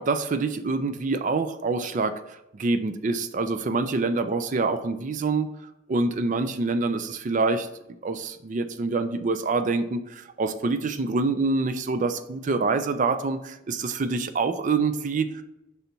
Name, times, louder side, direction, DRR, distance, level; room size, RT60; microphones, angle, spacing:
voice 1, 0.0-2.2 2.5-5.5 5.9-7.7 8.0-15.4, right 3 dB, 40° right, 10 dB, 0.4 m, -26 dB
5.5 x 4.0 x 4.3 m, 0.89 s
head